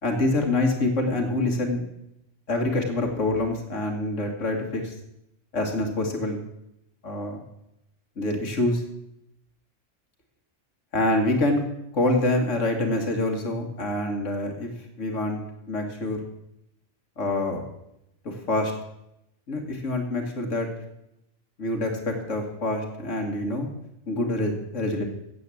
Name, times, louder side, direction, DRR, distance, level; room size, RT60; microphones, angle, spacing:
voice 1, 0.0-1.8 2.5-4.9 5.5-6.4 7.0-7.4 8.2-8.8 10.9-11.6 11.9-14.7 15.0-15.4 15.7-16.2 17.2-17.6 18.2-18.7 19.5-20.7 21.6-23.7 24.1-25.0, left 2 dB, 75° left, 2 dB, 2.0 m, -26 dB
8.3 x 7.4 x 8.2 m, 0.85 s
omnidirectional pair, 1.3 m